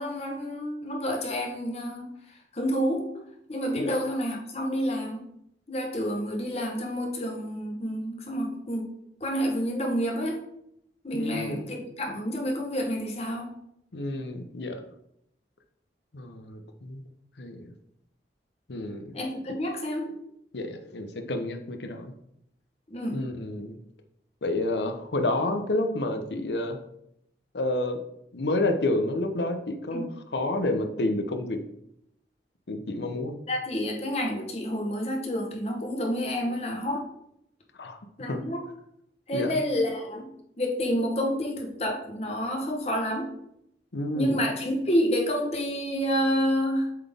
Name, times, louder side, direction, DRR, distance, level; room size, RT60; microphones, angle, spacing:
voice 1, 0.0-3.1 3.5-5.2 5.7-8.9 9.2-10.4 11.0-13.5 19.1-20.2 22.9-23.2 29.9-30.1 33.5-37.0 38.2-38.6 39.3-40.3 40.6-43.3 44.1-46.9, equal, 35° left, 1 dB, 1.1 m, -29 dB
voice 2, 11.1-11.6 13.9-14.8 16.1-17.1 17.4-17.7 18.7-19.2 20.5-22.1 23.1-23.8 24.4-26.8 27.5-28.0 28.3-31.6 32.7-33.4 37.8-38.0 38.3-38.4 39.3-39.5 43.9-44.4, left 2 dB, 80° left, 6 dB, 0.8 m, -29 dB
7.6 x 3.9 x 3.5 m, 0.76 s
head